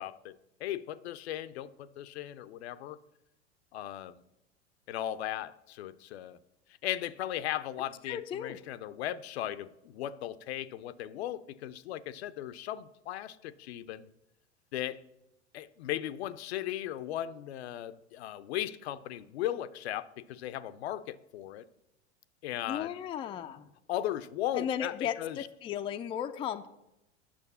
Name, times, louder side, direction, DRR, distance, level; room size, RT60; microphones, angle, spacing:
voice 1, 0.0-3.0 3.7-4.2 4.9-6.4 6.8-14.1 14.7-15.0 15.5-21.6 22.4-23.0 23.9-25.5, left 12 dB, 65° left, 14 dB, 0.6 m, -37 dB
voice 2, 8.1-8.6 22.7-23.7 24.5-26.7, left 9 dB, 15° left, 8 dB, 0.4 m, -35 dB
8.6 x 6.4 x 5.5 m, 0.88 s
hypercardioid pair, 90°, 35 cm